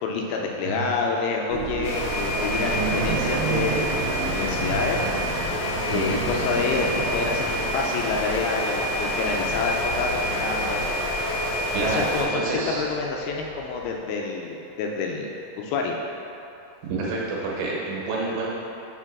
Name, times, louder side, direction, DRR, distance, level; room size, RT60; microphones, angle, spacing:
voice 1, 0.0-5.0 5.9-10.9 11.8-16.0 18.3-18.4, left 4 dB, 80° left, 0 dB, 2.4 m, -28 dB
sound 1, 1.5-14.0, right 5 dB, 90° right, 1.9 m, -33 dB
sound 2, 1.8-12.3, equal, 65° left, 1.9 m, -27 dB
voice 2, 11.7-12.8 16.8-18.5, right 3 dB, 70° right, -4 dB, 2.7 m, -28 dB
5.8 x 4.4 x 5.9 m, 2.8 s
omnidirectional pair, 4.7 m